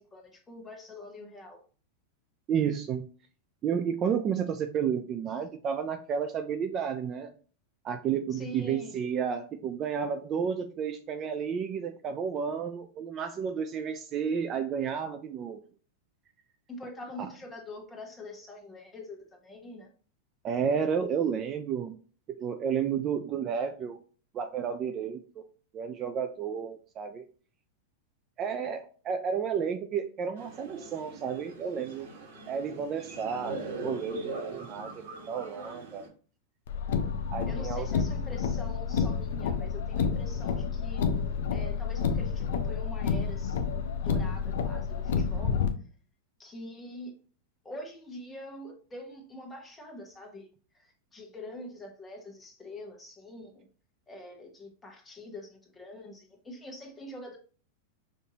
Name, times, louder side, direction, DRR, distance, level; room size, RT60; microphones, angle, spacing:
voice 1, 0.0-1.6 8.3-8.9 16.7-19.2 19.4-19.9 37.4-41.0 41.5-45.6 46.4-47.1 47.6-50.5 50.8-53.6 54.1-57.4, left 1 dB, 10° left, 2 dB, 1.0 m, -45 dB
voice 2, 2.5-3.1 3.6-7.3 7.8-15.6 17.2-17.3 20.4-22.0 22.3-24.0 24.3-25.4 25.7-27.2 28.4-32.1 32.5-36.1 37.3-37.9, right 7 dB, 30° right, 8 dB, 0.3 m, -31 dB
sound 1, 30.4-36.1, right 3 dB, 80° right, 1.4 m, -41 dB
Car, 36.7-45.7, left 6 dB, 75° left, 0.5 m, -29 dB
5.3 x 2.6 x 2.8 m, 0.40 s
supercardioid pair, 140°, 0 cm